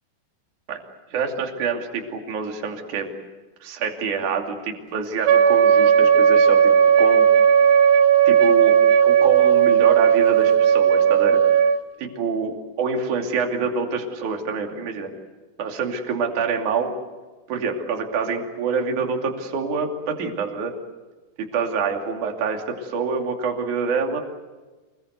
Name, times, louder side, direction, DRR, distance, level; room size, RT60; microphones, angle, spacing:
voice 1, 1.1-3.2 3.6-6.7 7.0-7.3 8.3-8.8 9.0-11.4 12.0-15.1 15.6-16.9 17.5-20.7 21.4-24.2, right 5 dB, 45° right, 2 dB, 3.7 m, -26 dB
Wind instrument woodwind instrument, 5.3-11.8, right 8 dB, 80° right, 2.1 m, -15 dB
27.5 x 21.5 x 8.2 m, 1.2 s
omnidirectional pair, 5.5 m